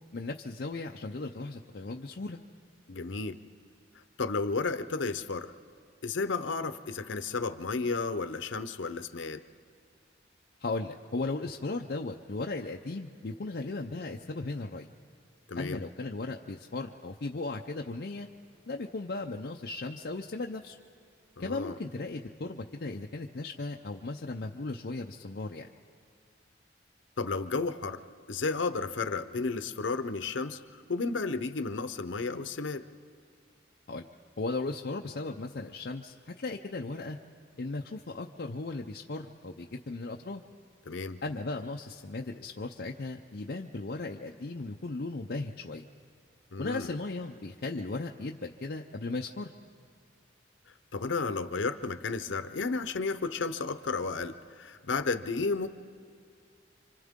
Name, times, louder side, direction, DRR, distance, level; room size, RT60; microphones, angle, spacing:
voice 1, 0.1-2.4 10.6-14.9 15.6-18.3 18.7-20.8 21.4-25.7 33.9-34.1 34.4-37.2 37.6-40.4 41.2-45.8 46.6-49.5, left 3 dB, 55° left, 1 dB, 0.6 m, -36 dB
voice 2, 2.9-3.4 4.2-5.5 6.0-9.4 15.5-15.8 21.4-21.8 27.2-28.0 28.3-32.8 40.9-41.2 46.5-47.0 50.9-55.7, left 4 dB, 90° left, 11 dB, 0.8 m, -32 dB
28.5 x 25.0 x 3.7 m, 2.3 s
head